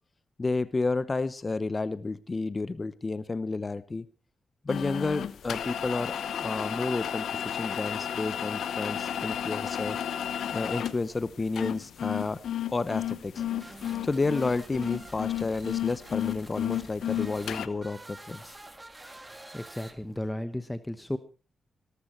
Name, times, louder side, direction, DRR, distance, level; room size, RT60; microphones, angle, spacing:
voice 1, 0.4-4.1 4.6-6.1 6.4-10.0 10.5-13.7 14.0-18.6, left 3 dB, 35° left, 16 dB, 0.9 m, -31 dB
sound 1, 4.7-17.7, left 10 dB, 80° left, 1.0 m, -32 dB
sound 2, 13.3-20.3, right 2 dB, 20° right, 2.4 m, -48 dB
voice 2, 19.5-21.2, left 1 dB, 10° left, 11 dB, 1.2 m, -34 dB
18.0 x 14.0 x 4.5 m, 0.36 s
cardioid pair, 60°, 0 cm